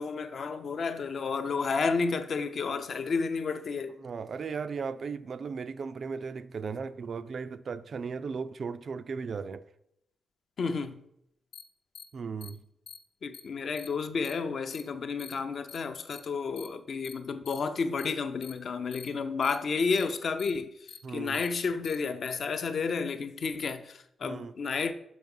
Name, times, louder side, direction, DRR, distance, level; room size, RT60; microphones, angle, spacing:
voice 1, 0.0-4.0 10.6-11.0 13.2-20.7 21.1-24.9, left 5 dB, 45° left, 0.5 m, -31 dB
voice 2, 4.0-9.6 12.1-12.6 21.0-21.4 24.2-24.5, right 5 dB, 40° right, 0.3 m, -36 dB
sound 1, 11.5-11.6 11.9-12.0 12.4-12.5 12.9-13.0 13.3-13.4 13.8-13.9 14.2-14.3 14.7-14.8 15.2-15.3 15.7-15.8 16.1-16.2 16.6-16.7 17.0-17.1 17.5-17.6 18.0-18.1 18.4-18.5 18.9-19.1 19.4-19.6 19.9-20.0 20.4-20.5 20.9-21.0 21.3-21.5 21.8-22.0 22.3-22.4, left 7 dB, 85° left, 1.0 m, -45 dB
5.9 x 5.9 x 5.3 m
wide cardioid pair, 165°, 0 cm